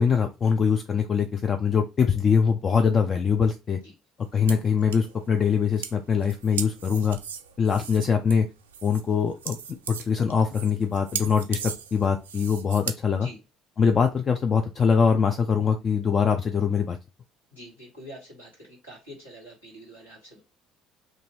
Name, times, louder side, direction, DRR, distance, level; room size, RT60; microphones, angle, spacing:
voice 1, 0.0-3.8 4.3-7.2 7.6-8.5 8.8-9.6 9.9-13.3 13.8-17.0, left 6 dB, 40° left, 6 dB, 0.4 m, -23 dB
sound 1, 4.2-12.9, right 7 dB, 80° right, 0.3 m, -37 dB
voice 2, 17.5-20.4, equal, 90° left, -4 dB, 1.5 m, -46 dB
2.6 x 2.6 x 3.0 m, 0.28 s
figure-of-eight pair, 55°, 0 cm